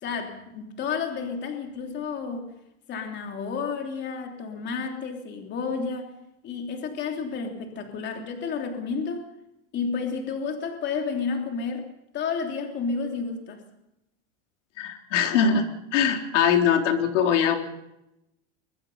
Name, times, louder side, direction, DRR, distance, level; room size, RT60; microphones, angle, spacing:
voice 1, 0.0-2.5 2.9-6.2 6.4-9.3 9.7-11.8 12.1-13.6, left 5 dB, 30° left, 3 dB, 3.2 m, -31 dB
voice 2, 14.8-15.7 15.9-17.6, left 7 dB, 90° left, 4 dB, 3.7 m, -22 dB
23.5 x 22.5 x 5.5 m, 0.87 s
supercardioid pair, 155°, 35 cm